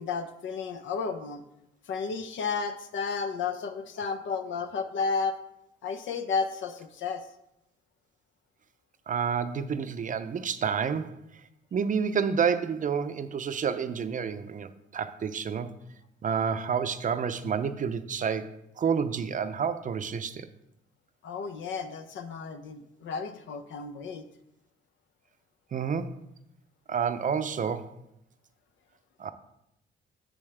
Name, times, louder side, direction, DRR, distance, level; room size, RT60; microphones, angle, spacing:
voice 1, 0.0-1.4 1.9-5.4 5.8-7.2 21.2-24.2, left 5 dB, 70° left, 9 dB, 0.8 m, -32 dB
voice 2, 9.1-11.2 11.7-15.7 16.2-20.5 25.7-26.2 26.9-27.9 29.2-29.3, right 6 dB, 40° right, 11 dB, 0.5 m, -29 dB
7.1 x 6.9 x 3.3 m, 0.81 s
cardioid pair, 90°, 20 cm